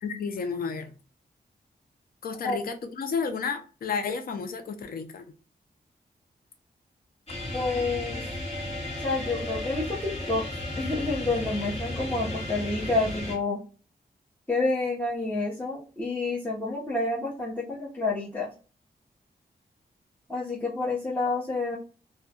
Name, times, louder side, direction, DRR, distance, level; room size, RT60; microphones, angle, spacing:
voice 1, 0.0-0.9 2.2-5.2, left 5 dB, 60° left, 0.4 m, -31 dB
sound 1, 7.3-13.4, left 1 dB, 40° left, 1.0 m, -34 dB
voice 2, 7.5-8.2 9.0-10.4 10.8-13.6 14.5-18.5 20.3-21.8, left 3 dB, 10° left, 0.7 m, -29 dB
2.2 x 2.2 x 2.7 m
wide cardioid pair, 85°, 17 cm